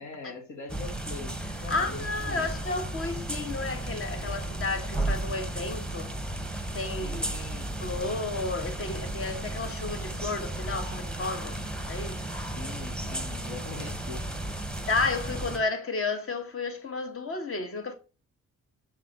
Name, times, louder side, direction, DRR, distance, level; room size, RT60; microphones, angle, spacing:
voice 1, 0.0-1.4 1.6-2.5 7.0-7.8 12.5-14.3, left 3 dB, 70° left, 2.1 m, -42 dB
sound 1, 0.7-15.6, right 1 dB, 5° left, 1.0 m, -34 dB
voice 2, 1.7-6.2 6.7-7.3 7.8-11.6 11.9-12.3 14.9-17.9, left 3 dB, 45° left, 1.4 m, -32 dB
6.0 x 4.2 x 4.6 m
cardioid pair, 90°, 30 cm